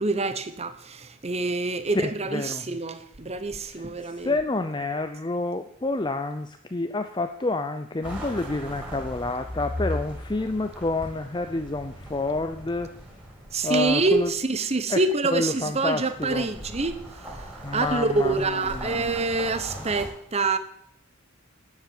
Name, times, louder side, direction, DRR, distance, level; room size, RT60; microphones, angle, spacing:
voice 1, 0.0-4.3 13.5-17.0 17.7-20.6, right 3 dB, 30° right, 1.0 m, -26 dB
voice 2, 1.9-2.7 3.7-12.9 13.6-14.3 14.9-15.0 15.3-16.5 17.6-19.1, left 2 dB, 20° left, 0.5 m, -29 dB
sound 1, 8.0-14.5 15.6-20.1, equal, 5° right, 4.5 m, -38 dB
11.5 x 7.4 x 9.3 m
head